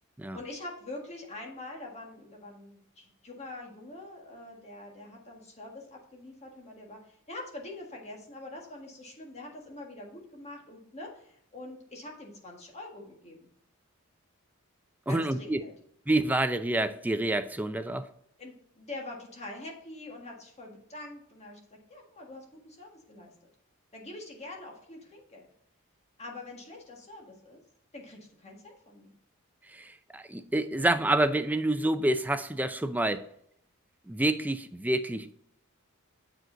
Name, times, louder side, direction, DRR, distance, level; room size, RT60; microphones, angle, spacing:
voice 1, 0.3-13.4 15.1-15.7 18.4-23.3 23.9-25.5 26.2-27.6 27.9-29.1, left 2 dB, 30° left, 1.7 m, -44 dB
voice 2, 15.1-15.6 16.1-18.1 29.7-33.3 34.1-35.3, right 1 dB, 10° right, 0.4 m, -28 dB
7.6 x 5.0 x 3.9 m
head